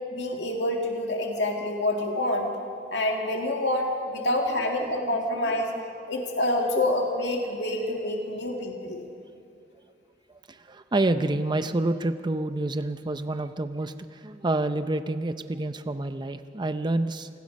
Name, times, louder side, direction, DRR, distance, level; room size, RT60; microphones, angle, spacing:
voice 1, 0.1-2.5 2.9-5.7 6.1-9.0, left 1 dB, 85° left, 1 dB, 2.1 m, -27 dB
voice 2, 4.8-5.1 5.4-5.6 10.5-17.3, right 2 dB, 25° right, 10 dB, 0.6 m, -28 dB
27.5 x 20.0 x 5.3 m, 2.4 s
head